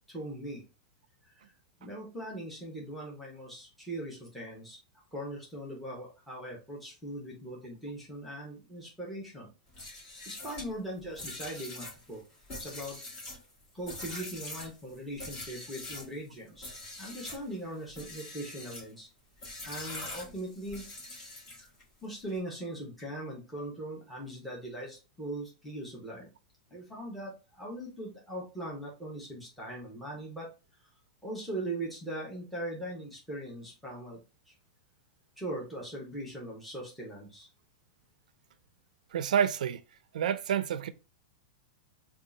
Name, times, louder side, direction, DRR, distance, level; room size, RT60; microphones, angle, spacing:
voice 1, 0.1-0.6 1.2-1.3 1.8-4.8 5.1-9.5 10.3-12.2 12.6-13.0 13.7-16.7 17.0-19.1 19.6-20.9 22.0-26.3 26.7-30.5 31.2-34.2 34.5-34.6 35.4-37.5, right 1 dB, ahead, 0.9 m, -40 dB
sound 1, 9.7-16.1 16.6-17.4 17.9-18.9 19.4-21.8, left 2 dB, 30° left, 1.6 m, -43 dB
voice 2, 39.1-39.8 40.1-40.9, right 8 dB, 85° right, 0.4 m, -28 dB
3.6 x 2.4 x 3.8 m
supercardioid pair, 170°, 4 cm